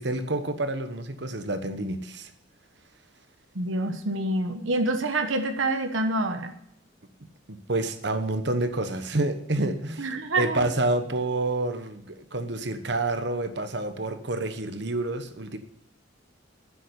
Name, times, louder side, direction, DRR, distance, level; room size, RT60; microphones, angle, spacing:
voice 1, 0.0-2.3 7.5-10.1 10.4-15.6, right 2 dB, 60° right, 9 dB, 1.2 m, -28 dB
voice 2, 3.5-6.5 10.0-10.7, right 2 dB, 90° right, 6 dB, 1.2 m, -27 dB
10.5 x 7.6 x 9.8 m, 0.75 s
head